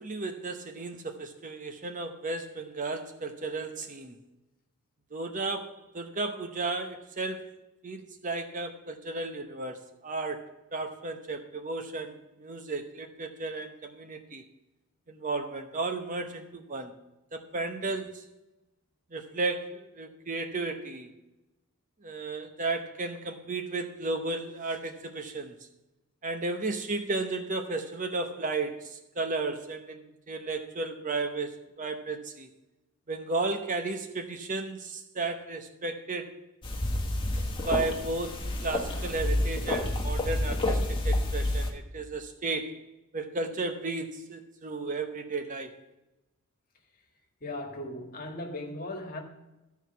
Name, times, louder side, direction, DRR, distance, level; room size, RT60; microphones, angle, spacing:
voice 1, 0.0-4.2 5.1-7.5 7.8-14.4 15.1-16.9 17.3-18.2 19.1-21.1 22.0-25.6 26.2-32.5 33.1-36.3 37.6-42.8 43.1-45.8, right 3 dB, 35° right, 0.8 m, -34 dB
sound 1, 36.6-41.7, left 1 dB, 25° left, 1.3 m, -29 dB
voice 2, 47.4-49.2, left 1 dB, 40° left, 1.7 m, -37 dB
13.0 x 4.6 x 6.8 m
head